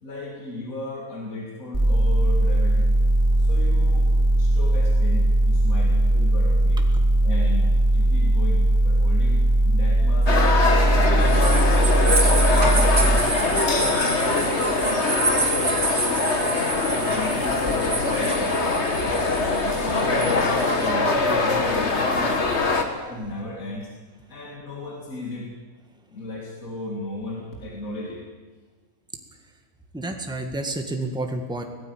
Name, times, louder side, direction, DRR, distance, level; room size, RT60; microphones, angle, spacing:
voice 1, 0.0-2.9 3.4-4.1 4.4-6.8 7.2-10.3 10.9-13.7 14.2-15.2 16.1-19.4 19.8-22.4 23.1-23.9 24.3-25.5 26.1-28.2, left 1 dB, 60° left, -1 dB, 2.9 m, -36 dB
sound 1, 1.7-13.2, right 1 dB, 30° right, 2.4 m, -19 dB
sound 2, 10.3-22.8, left 3 dB, 45° left, 2.1 m, -23 dB
sound 3, 11.2-20.9, right 3 dB, 90° right, 3.3 m, -29 dB
voice 2, 29.9-31.6, right 2 dB, 5° right, 4 dB, 1.7 m, -30 dB
18.0 x 15.0 x 9.5 m, 1.4 s
omnidirectional pair, 1.6 m